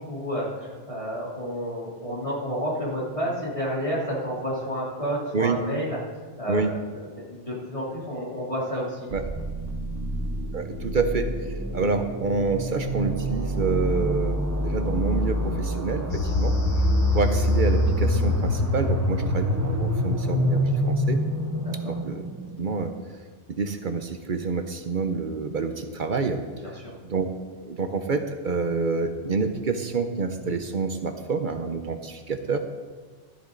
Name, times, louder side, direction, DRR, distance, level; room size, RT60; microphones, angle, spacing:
voice 1, 0.1-6.8 7.1-9.1 21.5-21.9 26.6-26.9, equal, 25° left, -6 dB, 3.0 m, -30 dB
sound 1, 9.1-22.9, right 1 dB, 20° right, 0.6 m, -27 dB
voice 2, 10.5-11.3 11.7-16.5 17.1-21.2 21.9-22.2 22.6-22.9 23.5-26.4 27.0-27.3 27.6-32.6, right 4 dB, 50° right, 7 dB, 0.8 m, -27 dB
sound 2, 16.1-21.2, left 4 dB, 70° left, 1.2 m, -28 dB
13.5 x 10.5 x 3.9 m, 1.5 s
omnidirectional pair, 1.2 m